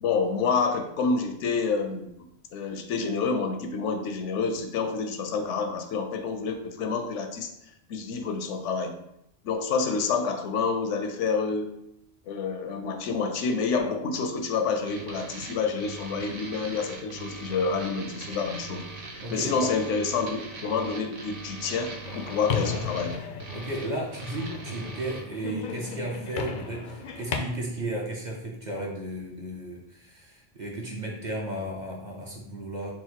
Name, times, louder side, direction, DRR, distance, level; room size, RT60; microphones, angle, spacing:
voice 1, 0.0-7.5 7.9-9.0 9.4-11.7 12.3-18.9 19.3-23.2, left 5 dB, 80° left, 6 dB, 0.9 m, -28 dB
sound 1, 14.9-25.2, right 3 dB, 85° right, 1.1 m, -41 dB
voice 2, 19.2-19.5 23.5-32.9, right 1 dB, 45° right, -2 dB, 0.7 m, -34 dB
sound 2, 22.0-27.4, left 5 dB, 60° left, 0.5 m, -35 dB
4.2 x 2.0 x 4.4 m, 0.79 s
omnidirectional pair, 1.2 m